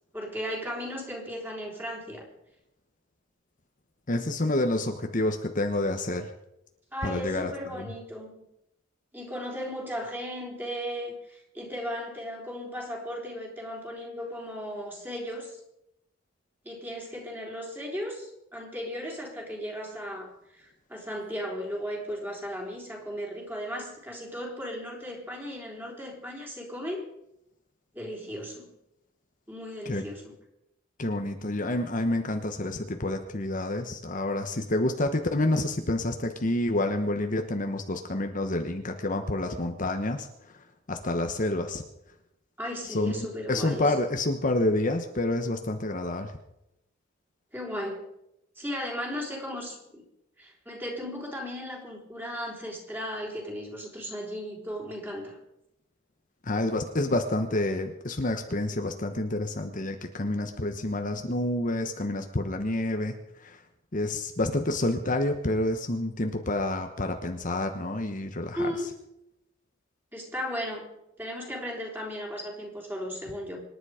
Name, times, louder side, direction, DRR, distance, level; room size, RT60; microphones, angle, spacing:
voice 1, 0.1-2.3 6.9-8.4 9.1-15.6 16.6-27.0 27.9-28.7 29.5-30.3 42.6-43.9 47.5-48.1 48.6-50.0 50.4-55.4 68.5-68.9 70.1-73.6, equal, 10° right, 0 dB, 3.9 m, -36 dB
voice 2, 4.1-6.3 7.0-7.9 29.8-30.0 31.0-40.3 40.9-41.8 42.9-46.3 56.5-63.6 63.9-68.7, left 1 dB, 40° left, 6 dB, 1.1 m, -28 dB
25.5 x 10.5 x 5.0 m, 0.85 s
head